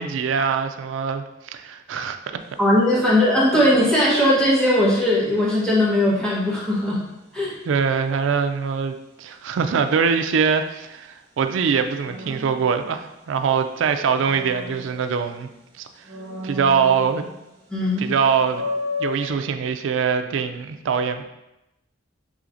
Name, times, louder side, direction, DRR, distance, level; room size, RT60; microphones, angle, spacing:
voice 1, 0.0-2.2 3.0-3.2 7.7-15.5 15.8-15.9 16.4-17.2 18.0-18.7 19.0-21.2, right 6 dB, 75° right, 8 dB, 0.4 m, -23 dB
sound 1, 2.4-2.7 12.0-13.5 13.9-15.5 16.0-17.6 17.9-18.0 18.4-19.3, left 2 dB, 60° right, 1.0 m, -33 dB
voice 2, 2.6-7.0 7.3-7.5 17.7-18.1, left 1 dB, 5° left, -7 dB, 1.1 m, -19 dB
6.2 x 3.1 x 2.5 m, 0.91 s
head